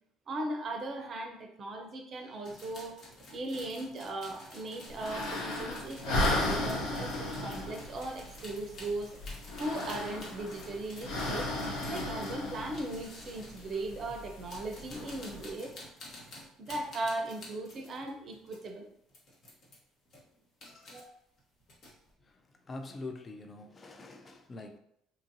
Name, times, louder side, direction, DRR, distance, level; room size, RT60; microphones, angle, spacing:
voice 1, 0.3-3.0 3.3-9.1 9.6-11.5 11.9-15.7 16.6-18.9 20.9-21.1, right 2 dB, 50° right, 0.5 m, -38 dB
sound 1, 2.4-13.6 14.3-18.7 19.1-19.8 20.0-21.0 21.4-22.1, left 1 dB, 55° left, 1.0 m, -51 dB
sound 2, 4.9-15.5, left 1 dB, 80° left, 0.7 m, -36 dB
voice 2, 22.7-24.8, left 2 dB, 35° left, 0.4 m, -44 dB
2.9 x 2.5 x 2.6 m
hypercardioid pair, 70°, 0 cm